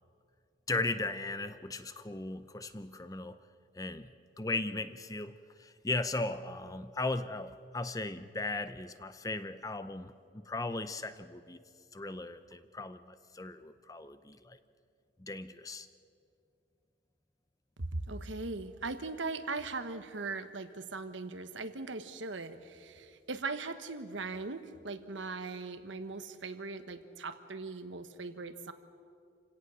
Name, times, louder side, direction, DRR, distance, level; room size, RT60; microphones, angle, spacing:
voice 1, 0.7-3.4 3.8-4.1 4.4-11.6 11.9-14.6 15.2-15.9, left 2 dB, 20° left, 12 dB, 0.6 m, -37 dB
voice 2, 17.9-28.7, right 3 dB, 75° right, 10 dB, 1.2 m, -39 dB
28.5 x 17.0 x 6.3 m, 2.4 s
head